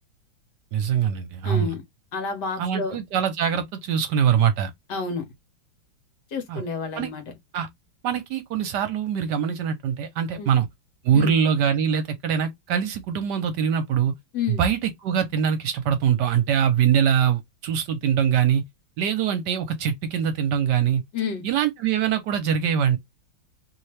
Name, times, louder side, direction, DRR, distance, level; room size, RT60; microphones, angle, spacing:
voice 1, 0.7-1.7 2.6-4.7 6.5-6.6 7.0-7.1 7.5-7.7 8.0-10.7 11.0-14.1 14.5-18.6 19.0-21.0 21.4-23.0, right 8 dB, 70° right, 1.2 m, -23 dB
voice 2, 1.4-1.8 2.1-3.0 4.9-5.3 6.3-7.2 10.4-10.5 11.1-11.3 14.3-14.6 21.1-21.4, left 5 dB, 65° left, 1.5 m, -29 dB
3.0 x 2.8 x 3.2 m
omnidirectional pair, 2.1 m